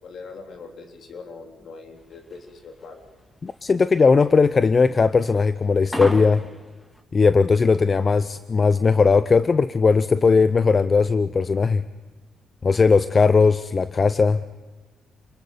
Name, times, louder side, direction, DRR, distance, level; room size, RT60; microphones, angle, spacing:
voice 1, 0.0-3.0, left 4 dB, 60° left, 2 dB, 3.4 m, -41 dB
sound 1, 2.0-7.0, equal, 10° left, 1.8 m, -34 dB
voice 2, 3.4-6.4 7.1-11.8 12.6-14.4, left 4 dB, 35° left, 13 dB, 0.6 m, -18 dB
28.0 x 21.0 x 5.2 m, 1.3 s
cardioid pair, 90°, 0 cm